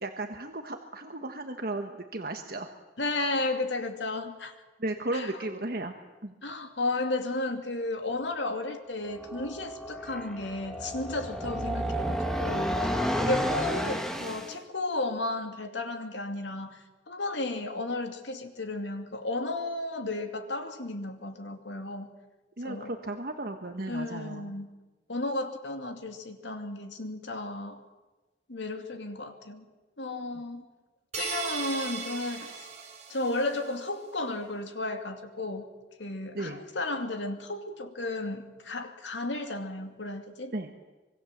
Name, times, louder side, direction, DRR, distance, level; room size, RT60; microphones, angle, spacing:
voice 1, 0.0-2.7 4.8-5.9 6.2-6.3 22.6-24.5 36.3-36.6 40.5-40.7, right 2 dB, 55° right, 5 dB, 1.4 m, -35 dB
voice 2, 3.0-4.5 5.1-5.3 6.4-22.1 22.6-22.9 23.9-24.7 25.1-27.8 28.5-29.6 30.0-30.7 31.1-32.7 33.1-35.7 36.0-40.5, left 2 dB, 90° left, 6 dB, 2.4 m, -33 dB
sound 1, 9.1-14.6, equal, 5° left, 1.6 m, -31 dB
sound 2, 31.1-33.6, right 6 dB, 40° right, 3.9 m, -37 dB
25.0 x 23.0 x 7.4 m, 1.2 s
head